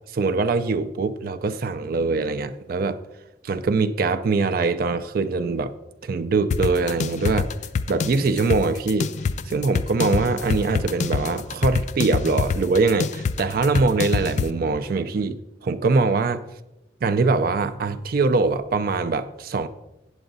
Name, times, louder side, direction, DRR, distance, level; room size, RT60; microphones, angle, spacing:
voice 1, 0.1-3.0 3.4-5.7 6.0-7.5 7.9-9.1 9.5-16.4 17.0-19.7, right 4 dB, 55° right, 11 dB, 0.4 m, -23 dB
sound 1, 6.5-14.5, left 5 dB, 40° left, 0.3 m, -25 dB
8.1 x 7.7 x 3.9 m, 0.98 s
head